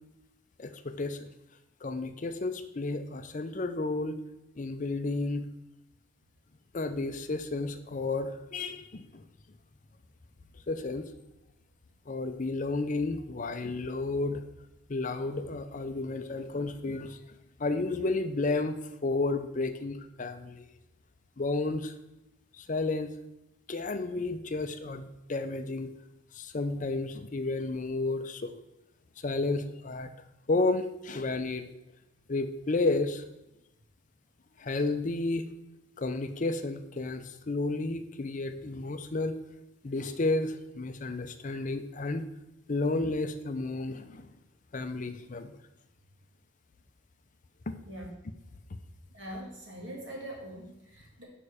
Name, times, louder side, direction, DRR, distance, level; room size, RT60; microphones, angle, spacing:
voice 1, 0.6-1.3 1.8-4.2 4.6-5.5 6.7-9.2 10.7-11.1 12.1-14.4 14.9-17.2 17.6-18.7 19.0-20.7 21.4-21.9 22.6-23.1 23.7-25.9 26.3-28.5 29.2-30.1 30.5-31.7 32.3-33.2 34.6-35.4 36.0-39.4 39.8-42.2 42.7-44.3 44.7-45.5, left 3 dB, 35° left, 9 dB, 0.5 m, -32 dB
voice 2, 49.1-51.2, right 1 dB, 60° right, -3 dB, 2.5 m, -42 dB
6.7 x 5.4 x 4.9 m, 0.93 s
head